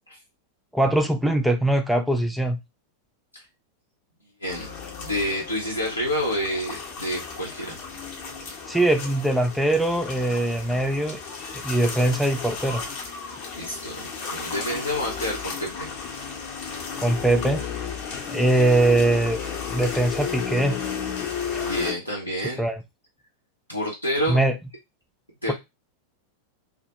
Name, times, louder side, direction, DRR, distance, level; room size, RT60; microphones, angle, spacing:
voice 1, 0.7-2.6 8.7-11.2 11.6-12.8 17.0-17.6 18.3-19.4 19.7-20.8 22.6-22.8 24.3-24.5, right 1 dB, ahead, 0.3 m, -22 dB
voice 2, 4.4-4.7 5.0-7.8 13.5-15.9 21.6-22.6 23.7-24.4 25.4-25.5, equal, 85° left, 0.6 m, -28 dB
sound 1, 4.5-21.9, left 6 dB, 45° left, 0.6 m, -34 dB
2.1 x 2.1 x 2.7 m
figure-of-eight pair, 90°, 0 cm